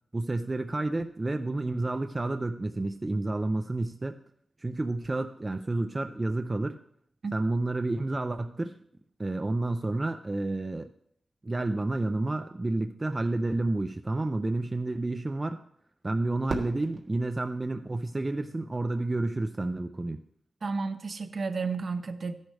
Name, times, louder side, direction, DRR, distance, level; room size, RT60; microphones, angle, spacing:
voice 1, 0.1-4.2 4.6-6.8 7.3-8.8 9.2-10.9 11.4-15.6 16.0-20.2, right 2 dB, 25° right, 7 dB, 0.4 m, -30 dB
Fireworks, 16.5-18.7, right 3 dB, 70° right, 1.5 m, -39 dB
voice 2, 20.6-22.3, right 4 dB, 55° right, 9 dB, 0.8 m, -32 dB
13.0 x 10.5 x 3.3 m, 0.67 s
wide cardioid pair, 105°, 0 cm